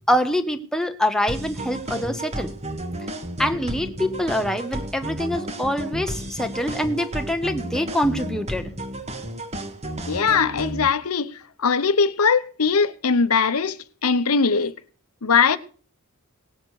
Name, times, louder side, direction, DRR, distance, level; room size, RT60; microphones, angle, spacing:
voice 1, 0.0-2.6 3.4-8.7, equal, 5° left, 1.1 m, -25 dB
sound 1, 1.3-10.9, right 1 dB, 30° right, 1.6 m, -32 dB
voice 2, 10.1-11.3 11.6-13.8 14.0-14.7 15.2-15.6, left 5 dB, 85° left, 0.9 m, -20 dB
18.5 x 7.7 x 6.5 m
head